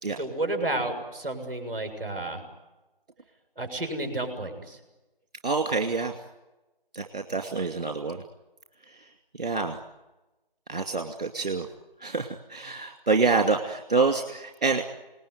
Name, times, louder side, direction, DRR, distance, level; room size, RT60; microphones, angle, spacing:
voice 1, 0.2-2.4 3.6-4.8, right 2 dB, 10° right, 2 dB, 6.5 m, -31 dB
voice 2, 5.4-6.1 6.9-8.2 8.9-9.8 10.7-11.7 12.0-14.8, right 4 dB, 45° right, 4 dB, 2.6 m, -27 dB
29.0 x 19.5 x 9.6 m, 1.1 s
figure-of-eight pair, 175°, 29 cm